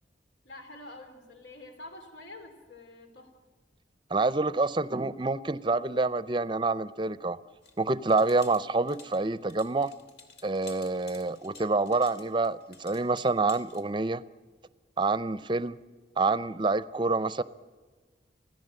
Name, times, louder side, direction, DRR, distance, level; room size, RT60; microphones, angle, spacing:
voice 1, 0.4-3.3, left 2 dB, 85° left, 5 dB, 2.9 m, -47 dB
voice 2, 4.1-7.4 7.8-9.9 10.4-14.2 15.0-15.8 16.2-17.4, right 3 dB, 25° right, 15 dB, 0.6 m, -27 dB
sound 1, 7.6-13.8, left 4 dB, 70° left, 2.7 m, -52 dB
26.0 x 16.5 x 7.7 m, 1.4 s
head